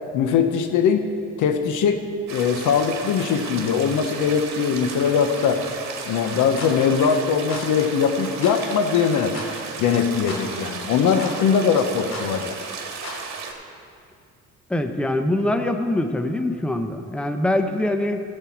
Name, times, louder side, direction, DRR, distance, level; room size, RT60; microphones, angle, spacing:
voice 1, 0.1-1.0 1.4-2.0 2.3-5.6 6.0-9.3 9.8-12.6, left 6 dB, 85° left, 7 dB, 1.0 m, -21 dB
sound 1, 2.3-13.5, right 5 dB, 65° right, 1.8 m, -34 dB
sound 2, 6.6-6.8 7.5-7.7 8.4-8.6 9.3-9.5 10.3-10.5 11.2-11.4 12.1-12.3 13.0-13.2, left 2 dB, 60° left, 2.8 m, -34 dB
voice 2, 14.7-18.2, left 1 dB, 5° left, 6 dB, 0.8 m, -23 dB
14.5 x 7.8 x 4.5 m, 2.3 s
cardioid pair, 90°, 30 cm